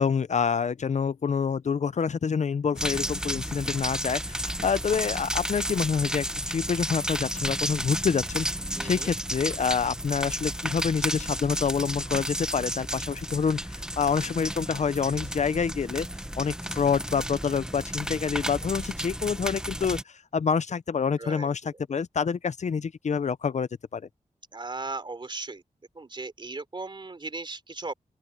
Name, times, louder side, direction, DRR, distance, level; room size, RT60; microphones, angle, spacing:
voice 1, 0.0-8.5 8.8-16.1 16.4-24.0, left 6 dB, 55° left, 0.6 m, -27 dB
sound 1, 2.8-20.0, right 1 dB, 5° right, 0.9 m, -32 dB
voice 2, 8.8-9.1 21.2-21.5 24.5-25.6 26.0-27.9, right 3 dB, 35° right, 3.4 m, -37 dB
open air
wide cardioid pair, 115°, 14 cm